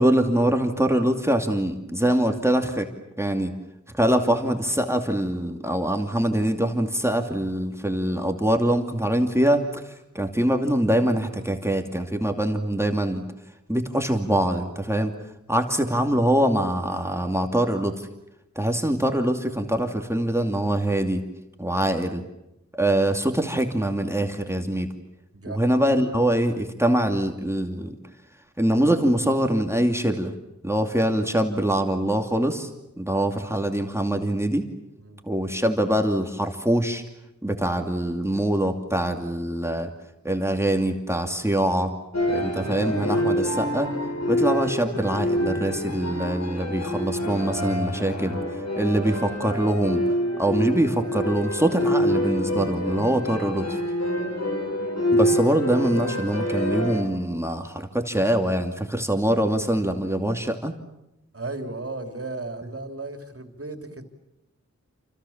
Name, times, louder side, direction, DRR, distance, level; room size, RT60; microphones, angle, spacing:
voice 1, 0.0-2.9 3.2-3.5 3.9-13.2 13.7-15.1 15.5-18.1 18.6-21.2 21.6-22.3 22.8-24.9 25.5-28.0 28.6-30.3 30.6-32.7 33.0-34.6 35.3-37.0 37.4-39.9 40.2-41.9 42.3-43.9 44.3-48.4 48.8-50.0 50.4-53.8 55.1-60.7, right 1 dB, 10° right, 3 dB, 2.6 m, -23 dB
sound 1, 42.1-57.0, equal, 65° left, 6.5 m, -26 dB
voice 2, 61.3-64.1, right 2 dB, 50° right, 6 dB, 3.5 m, -36 dB
29.0 x 27.0 x 7.3 m, 0.89 s
wide cardioid pair, 75°, 29 cm